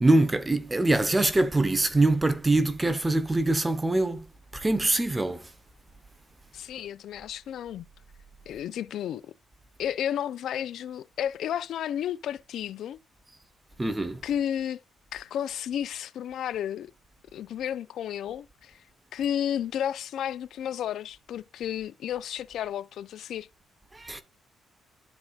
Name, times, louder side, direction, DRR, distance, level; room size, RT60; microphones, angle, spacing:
voice 1, 0.0-4.3 4.5-5.5 13.8-14.2 23.9-24.2, right 2 dB, 15° right, 0.9 m, -24 dB
voice 2, 6.5-7.9 8.5-9.3 9.8-13.0 14.2-14.8 15.1-16.9 17.3-18.8 19.1-23.5, left 10 dB, 75° left, 0.4 m, -32 dB
12.5 x 4.8 x 2.4 m
cardioid pair, 90°, 0 cm